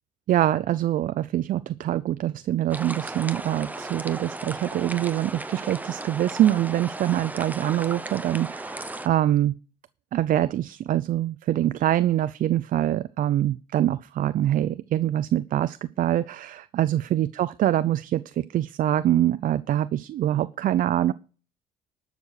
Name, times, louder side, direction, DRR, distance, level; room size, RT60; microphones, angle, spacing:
voice 1, 0.3-9.5 10.1-21.1, right 12 dB, 55° right, 15 dB, 0.5 m, -24 dB
sound 1, 2.7-9.1, right 2 dB, 10° right, 0.9 m, -36 dB
12.5 x 6.6 x 6.4 m, 0.39 s
cardioid pair, 110°, 17 cm